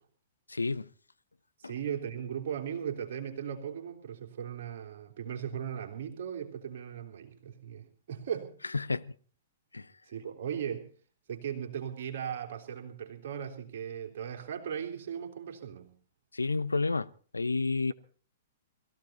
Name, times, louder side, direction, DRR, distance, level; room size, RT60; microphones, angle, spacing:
voice 1, 0.5-0.9 1.6-1.7 8.7-9.1 9.7-9.9 16.3-17.9, left 3 dB, 80° left, 0.7 m, -30 dB
voice 2, 1.6-8.5 10.1-10.9 11.3-15.9, right 8 dB, 55° right, 3.5 m, -38 dB
21.5 x 15.0 x 4.3 m
figure-of-eight pair, 110°, 0 cm